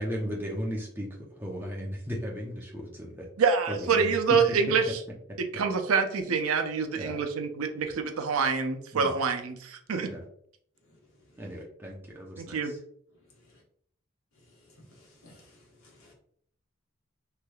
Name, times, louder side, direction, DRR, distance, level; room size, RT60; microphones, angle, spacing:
voice 1, 0.0-3.3 3.7-4.4 6.9-7.2 8.9-9.1 10.1-10.3 11.4-12.8, equal, 10° right, -2 dB, 0.6 m, -36 dB
voice 2, 3.4-5.0 5.5-10.1 12.4-12.7, right 5 dB, 90° right, 6 dB, 0.5 m, -26 dB
voice 3, 10.8-11.4 13.3-13.6 14.3-16.1, left 1 dB, 85° left, -1 dB, 1.1 m, -58 dB
3.3 x 3.1 x 2.3 m, 0.64 s
head